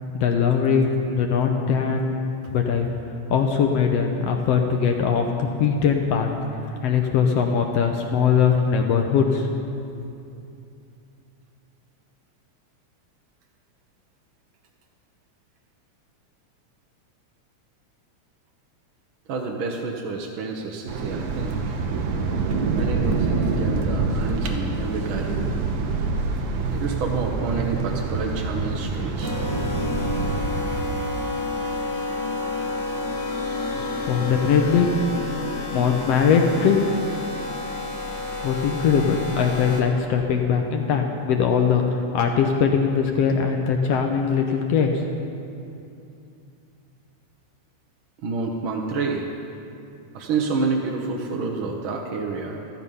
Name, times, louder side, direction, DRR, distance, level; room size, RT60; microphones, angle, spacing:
voice 1, 0.1-2.1 2.5-2.9 3.3-6.3 6.7-9.5 33.9-35.0 35.7-36.8 38.4-45.1, left 6 dB, 70° left, 3 dB, 1.7 m, -21 dB
voice 2, 19.3-21.6 22.8-25.5 26.7-29.4 48.2-49.3 50.1-52.6, right 4 dB, 65° right, 0 dB, 1.3 m, -28 dB
sound 1, 20.9-30.8, right 4 dB, 80° right, 2.3 m, -26 dB
sound 2, 29.2-39.8, left 2 dB, 10° left, 1.1 m, -29 dB
13.5 x 12.5 x 5.5 m, 2.6 s
omnidirectional pair, 3.3 m